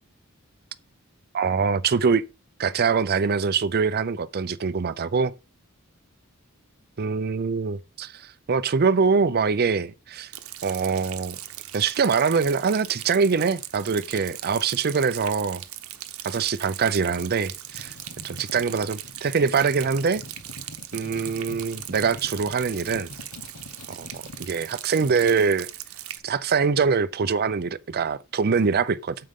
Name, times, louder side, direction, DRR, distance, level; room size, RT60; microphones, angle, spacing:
voice 1, 1.3-2.2 2.6-5.3 7.0-10.3 10.6-11.4 11.7-15.6 16.2-17.9 18.2-20.2 20.9-23.1 23.9-25.7 26.2-29.2, right 5 dB, 45° right, 0.5 m, -24 dB
Rain, 10.3-26.2, right 13 dB, 85° right, 0.9 m, -39 dB
sound 1, 17.4-24.5, left 2 dB, 70° left, 1.2 m, -44 dB
8.9 x 7.7 x 3.7 m
head